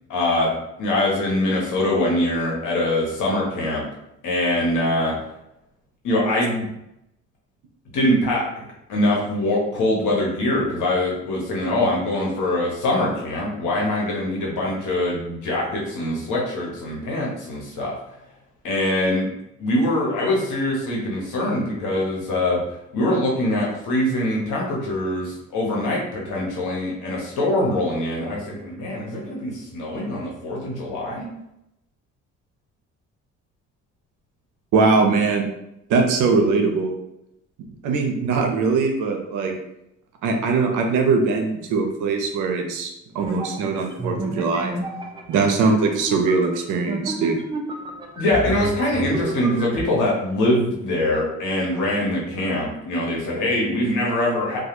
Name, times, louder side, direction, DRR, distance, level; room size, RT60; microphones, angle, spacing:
voice 1, 0.1-0.5 0.8-3.8 4.2-5.1 6.0-6.6 7.9-18.0 18.6-19.2 19.6-22.6 22.9-31.3 48.2-54.6, left 1 dB, 85° left, -3 dB, 0.9 m, -23 dB
voice 2, 34.7-35.4 35.9-36.9 37.8-39.5 40.2-44.7 45.3-47.4, right 4 dB, 90° right, 3 dB, 0.5 m, -21 dB
sound 1, 43.2-49.8, right 2 dB, 15° right, 0.3 m, -30 dB
2.3 x 2.2 x 2.9 m, 0.84 s
cardioid pair, 90°, 30 cm